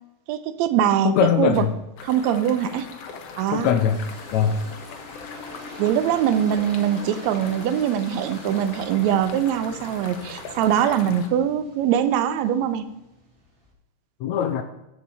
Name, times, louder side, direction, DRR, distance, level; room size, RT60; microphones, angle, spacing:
voice 1, 0.3-1.6 2.1-2.9 3.4-3.7 5.8-12.9, right 10 dB, 75° right, 11 dB, 1.9 m, -22 dB
voice 2, 1.0-1.7 3.5-4.0 4.3-4.6 14.2-14.6, left 8 dB, 80° left, 8 dB, 1.9 m, -21 dB
sound 1, 2.0-11.3, left 5 dB, 60° left, 1.9 m, -40 dB
sound 2, 3.9-13.7, left 1 dB, 20° right, 1.9 m, -44 dB
14.0 x 4.8 x 5.5 m, 0.97 s
omnidirectional pair, 3.5 m